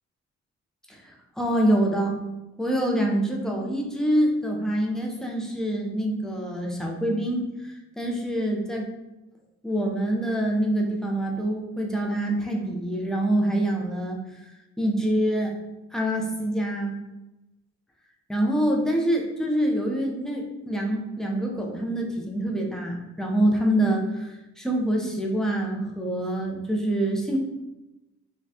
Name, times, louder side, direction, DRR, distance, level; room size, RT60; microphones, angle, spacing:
voice 1, 0.9-2.2 2.6-8.9 9.6-14.5 14.8-15.5 15.9-17.0 18.3-27.4, right 1 dB, ahead, -1 dB, 0.6 m, -26 dB
4.2 x 2.3 x 2.8 m, 1.0 s
cardioid pair, 90°, 30 cm